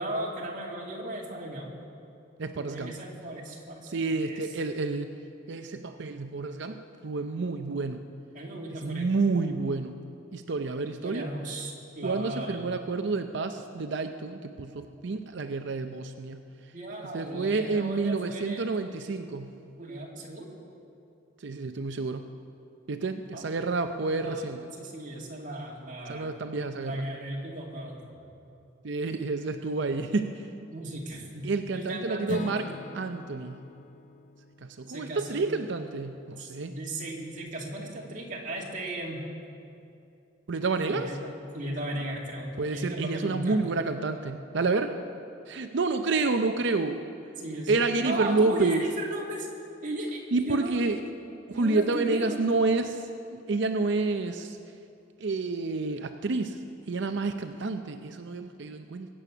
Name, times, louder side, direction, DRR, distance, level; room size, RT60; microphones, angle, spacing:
voice 1, 0.0-1.7 2.6-3.9 4.3-4.5 7.4-7.6 8.3-9.2 11.0-12.7 16.7-18.8 19.8-20.5 23.3-23.4 24.2-24.4 24.7-26.3 26.8-28.0 30.7-31.5 31.7-32.7 34.9-35.5 36.4-39.2 40.9-43.6 47.4-49.5 49.8-50.9 51.5-52.5, right 1 dB, 45° right, -2 dB, 2.3 m, -36 dB
voice 2, 2.4-2.9 3.9-5.1 5.5-8.0 8.8-10.0 10.3-11.3 12.0-16.4 17.1-19.5 21.4-22.3 22.9-24.7 26.1-27.1 28.8-30.5 31.4-32.7 32.9-33.6 34.6-36.7 40.5-41.1 42.6-44.9 45.5-47.0 47.7-48.8 50.3-51.0 51.5-53.0 53.3-54.6 55.2-56.6 56.9-59.1, right 3 dB, 65° right, 7 dB, 0.6 m, -29 dB
Acoustic guitar / Strum, 32.3-36.3, left 3 dB, 40° left, 0.5 m, -43 dB
22.5 x 8.5 x 6.1 m, 2.7 s
head